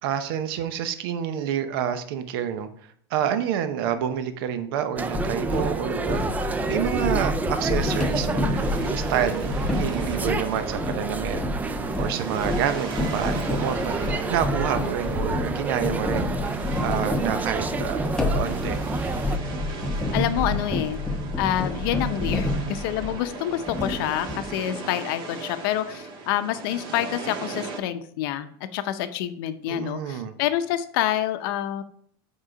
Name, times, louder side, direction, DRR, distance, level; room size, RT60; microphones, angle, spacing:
voice 1, 0.0-2.7 3.1-18.0 18.3-18.8 29.7-30.3, right 9 dB, 70° right, 9 dB, 0.8 m, -28 dB
sound 1, 5.0-19.4, right 3 dB, 15° right, 0.4 m, -30 dB
sound 2, 5.1-23.3 23.7-24.6, left 2 dB, 5° left, 0.9 m, -29 dB
sound 3, 7.9-27.8, right 4 dB, 45° right, 1.5 m, -38 dB
voice 2, 20.1-21.0 21.4-31.8, left 12 dB, 65° left, 10 dB, 0.7 m, -27 dB
7.4 x 4.8 x 4.9 m, 0.63 s
supercardioid pair, 135°, 13 cm